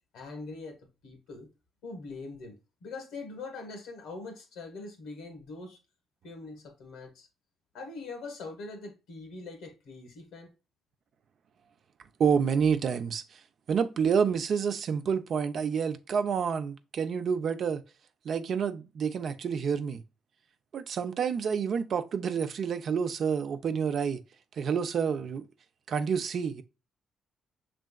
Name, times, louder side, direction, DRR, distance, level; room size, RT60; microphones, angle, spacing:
voice 1, 0.1-0.8 1.0-1.5 1.8-5.8 6.2-7.3 7.7-10.5, left 3 dB, 90° left, 1.4 m, -42 dB
voice 2, 12.2-13.2 13.7-17.8 18.2-20.0 20.7-24.2 24.6-25.5 25.9-26.6, right 6 dB, 60° right, 0.5 m, -28 dB
6.2 x 3.4 x 2.2 m
cardioid pair, 90°, 0 cm